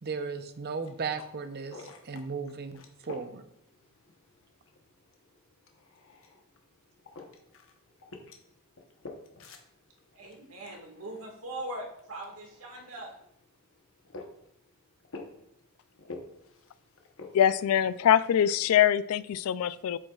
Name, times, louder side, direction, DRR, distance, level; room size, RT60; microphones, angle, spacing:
voice 1, 0.0-3.4, right 5 dB, 45° right, 0.7 m, -36 dB
sound 1, 0.6-18.5, left 3 dB, 65° left, 1.0 m, -51 dB
voice 2, 10.1-13.1, right 1 dB, 75° right, 1.8 m, -41 dB
voice 3, 17.3-20.0, left 9 dB, 80° left, 0.3 m, -23 dB
8.5 x 7.7 x 2.4 m
head